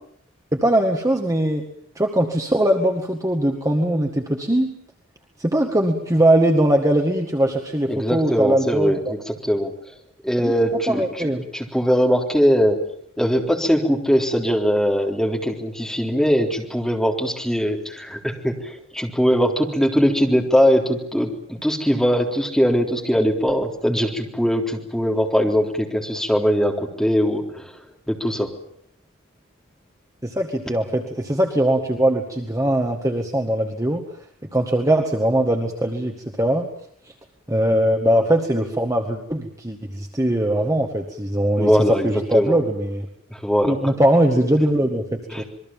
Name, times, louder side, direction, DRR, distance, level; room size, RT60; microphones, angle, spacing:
voice 1, 0.5-1.6 2.0-4.7 5.4-9.1 10.4-10.5 10.9-11.4 30.2-34.0 34.5-36.6 37.5-43.1 43.7-45.4, right 1 dB, 15° right, 3 dB, 1.9 m, -21 dB
voice 2, 7.9-9.7 10.2-12.8 13.2-28.5 41.6-42.6 43.3-43.9 45.3-45.4, equal, ahead, 0 dB, 3.7 m, -21 dB
27.0 x 22.0 x 7.4 m, 0.66 s
head